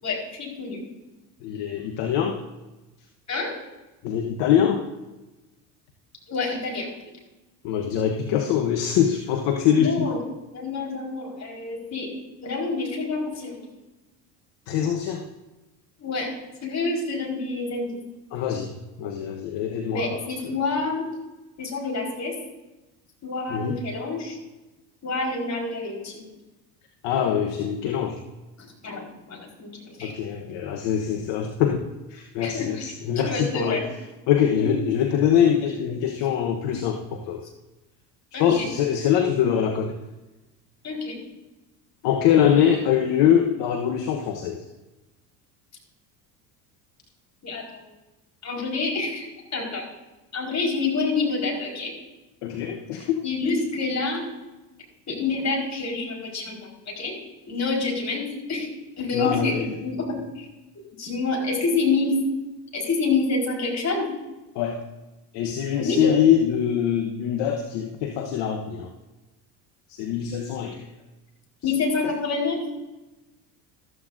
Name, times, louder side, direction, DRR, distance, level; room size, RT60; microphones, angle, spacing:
voice 1, 0.0-0.8 3.3-3.5 6.3-6.9 9.8-10.2 10.5-12.1 12.4-13.6 16.0-16.3 16.6-18.0 19.9-21.1 21.6-22.3 23.2-24.4 25.0-26.2 28.6-30.1 32.4-33.8 34.6-34.7 38.3-38.7 40.8-41.2 47.4-47.8 48.4-49.8 50.3-51.9 53.2-54.2 55.1-56.6 56.9-57.1 57.5-58.7 59.0-60.5 61.0-62.2 62.7-64.1 65.8-66.1 71.6-72.6, left 3 dB, 35° left, -1 dB, 4.5 m, -27 dB
voice 2, 1.4-2.4 4.0-4.9 7.6-10.1 14.7-15.2 18.3-18.7 19.0-20.2 20.4-20.6 23.5-23.8 27.0-28.2 30.0-33.8 34.3-37.4 38.4-40.0 42.0-44.6 52.4-53.2 59.1-59.6 64.5-64.8 65.3-68.9 69.9-70.9 72.0-72.1, left 9 dB, 55° left, 4 dB, 1.2 m, -23 dB
14.0 x 13.5 x 2.6 m, 1.1 s
hypercardioid pair, 70°, 49 cm